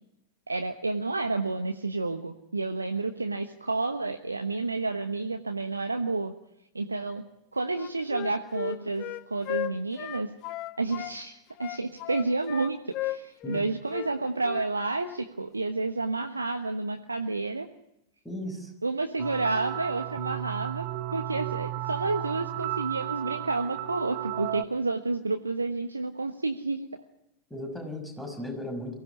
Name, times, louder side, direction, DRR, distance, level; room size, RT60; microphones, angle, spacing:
voice 1, 0.5-6.3 6.7-7.2 7.5-10.3 10.8-17.7 18.8-26.9, right 3 dB, 80° right, 6 dB, 1.2 m, -30 dB
Wind instrument woodwind instrument, 7.7-11.1 11.6-13.6 13.9-14.1 14.4-14.7 15.0-15.2, left 15 dB, 40° left, 1.2 m, -35 dB
voice 2, 18.2-18.7 27.5-28.9, left 1 dB, 5° left, 4 dB, 6.3 m, -36 dB
sound 1, 19.2-24.6, right 14 dB, 45° right, 1.1 m, -34 dB
23.5 x 16.5 x 9.6 m, 0.82 s
figure-of-eight pair, 90°, 0 cm